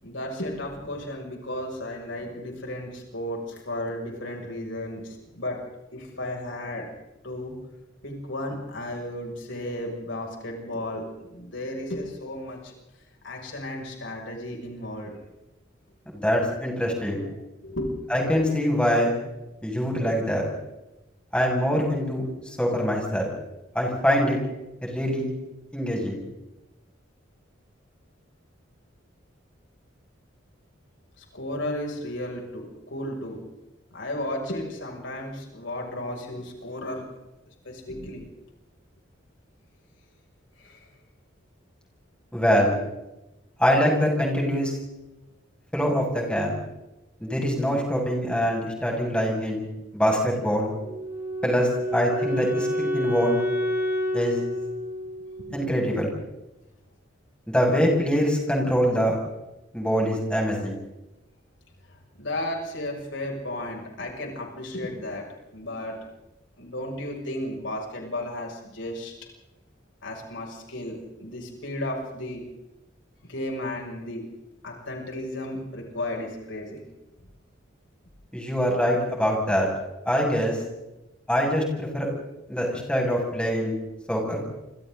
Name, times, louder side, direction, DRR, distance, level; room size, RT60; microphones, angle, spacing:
voice 1, 0.0-5.6 5.9-6.9 7.2-7.5 8.0-12.7 13.2-15.1 17.2-17.3 17.6-18.0 31.2-33.4 33.9-37.0 37.6-38.2 40.6-40.8 55.4-55.6 62.2-65.2 65.5-66.0 66.6-69.1 70.0-72.4 73.2-74.2 74.6-76.8, left 1 dB, 70° left, 0 dB, 6.7 m, -34 dB
voice 2, 16.1-17.2 18.1-19.1 19.6-20.4 21.3-22.3 22.6-23.3 23.7-24.4 24.8-25.3 25.7-26.2 42.3-42.8 43.6-44.7 45.7-46.5 47.2-49.7 49.9-50.7 51.4-53.4 54.1-54.4 55.5-56.1 57.5-59.2 59.7-60.8 78.3-79.7 80.0-80.6 81.3-82.1 82.5-83.7 84.1-84.5, equal, 5° left, -1 dB, 6.6 m, -24 dB
Wind instrument woodwind instrument, 50.8-55.8, equal, 15° right, 6.5 m, -29 dB
29.0 x 26.0 x 4.0 m, 0.96 s
head